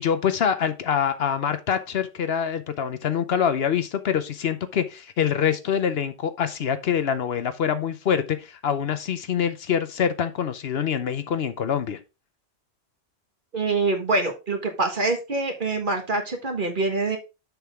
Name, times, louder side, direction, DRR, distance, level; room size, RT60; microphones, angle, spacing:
voice 1, 0.0-12.0, left 8 dB, 65° left, 1.0 m, -25 dB
voice 2, 13.5-17.2, right 3 dB, 50° right, 1.7 m, -25 dB
6.8 x 6.4 x 3.5 m
omnidirectional pair, 1.1 m